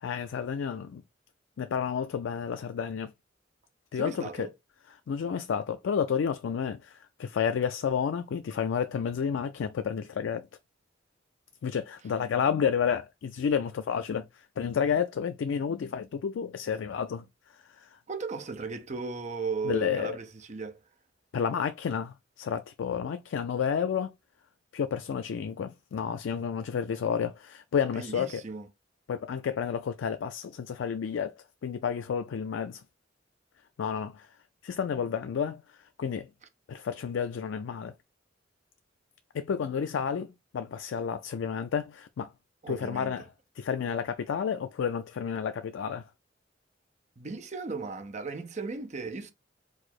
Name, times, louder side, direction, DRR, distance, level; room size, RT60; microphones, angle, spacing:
voice 1, 0.0-1.0 1.6-3.1 3.9-4.5 5.1-10.4 11.6-17.2 17.5-18.0 19.6-20.2 21.3-24.1 24.7-28.4 29.1-31.3 31.6-32.8 33.8-34.3 34.6-35.6 36.0-36.3 36.7-37.9 39.3-42.3 42.7-43.2 43.6-46.1, left 7 dB, 90° left, 0.4 m, -31 dB
voice 2, 3.9-4.5 18.1-20.8 27.9-28.7 42.6-43.1 47.2-49.3, right 4 dB, 40° right, 0.7 m, -36 dB
4.7 x 2.0 x 4.1 m
head